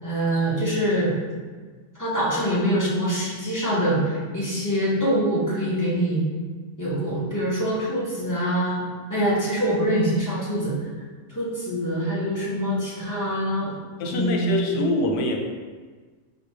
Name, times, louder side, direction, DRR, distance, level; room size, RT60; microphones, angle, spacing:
voice 1, 0.0-1.2 2.0-6.2 6.8-10.7 11.3-13.7 14.1-14.8, right 1 dB, 15° left, -8 dB, 0.6 m, -24 dB
voice 2, 14.0-15.4, left 2 dB, 85° left, 2 dB, 1.2 m, -24 dB
4.3 x 2.4 x 4.6 m, 1.4 s
omnidirectional pair, 1.8 m